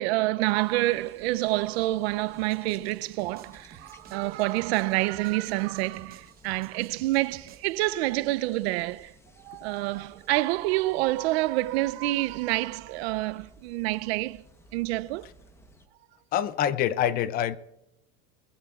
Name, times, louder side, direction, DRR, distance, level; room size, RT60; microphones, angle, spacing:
voice 1, 0.0-9.1 9.4-14.4 14.7-15.3, right 18 dB, 80° right, 0.5 m, -27 dB
sound 1, 0.6-15.9, equal, 10° left, 0.9 m, -56 dB
sound 2, 2.3-7.8, right 9 dB, 30° right, 0.9 m, -54 dB
voice 2, 16.3-17.6, left 10 dB, 30° left, 0.4 m, -25 dB
21.0 x 15.0 x 2.4 m
supercardioid pair, 160°, 31 cm